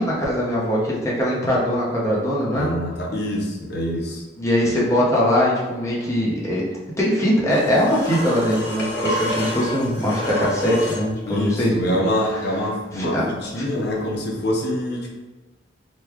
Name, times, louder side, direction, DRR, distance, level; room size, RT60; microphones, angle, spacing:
voice 1, 0.0-2.7 4.4-6.6 7.0-11.7 12.9-13.2, equal, 15° left, -6 dB, 0.8 m, -21 dB
voice 2, 2.5-4.2 4.6-4.7 11.3-15.1, equal, 65° left, -1 dB, 0.7 m, -25 dB
sound 1, 7.5-11.1 14.0-14.1, left 1 dB, 90° left, 1.1 m, -28 dB
3.0 x 2.2 x 3.5 m, 1.2 s
head